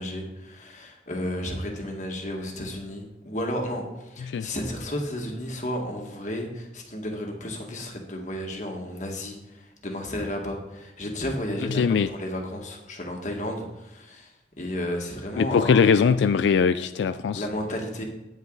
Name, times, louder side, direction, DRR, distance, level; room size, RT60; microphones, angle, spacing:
voice 1, 0.0-14.3 14.6-16.0 17.4-18.0, left 1 dB, 45° left, 1 dB, 1.7 m, -32 dB
voice 2, 11.7-12.1 15.4-17.5, left 6 dB, 90° left, 12 dB, 0.3 m, -21 dB
9.5 x 8.9 x 3.9 m, 0.92 s
head